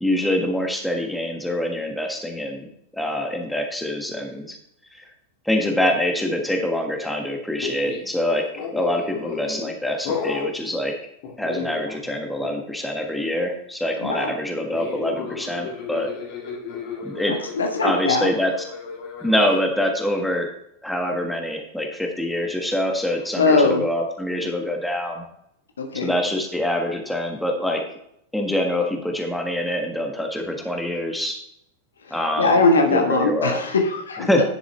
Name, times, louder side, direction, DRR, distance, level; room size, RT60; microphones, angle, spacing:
voice 1, 0.0-2.7 2.9-4.6 4.9-5.1 5.4-8.4 8.7-10.9 11.4-16.1 17.0-17.3 17.8-18.5 19.2-20.5 20.8-25.2 25.9-27.8 28.3-31.4 32.1-32.5 32.9-33.6 34.3-34.4, left 1 dB, 5° left, 2 dB, 1.5 m, -25 dB
sound 1, 7.6-8.1 8.5-9.7 10.1-10.5 11.2-12.1 12.4-12.7 14.7-19.6, left 5 dB, 45° left, 2.1 m, -33 dB
voice 2, 14.0-14.3 17.3-18.3 23.4-23.8 25.8-26.1 32.0-34.3, left 3 dB, 70° left, 4 dB, 1.4 m, -21 dB
10.5 x 7.2 x 3.3 m, 0.74 s
figure-of-eight pair, 90°, 0 cm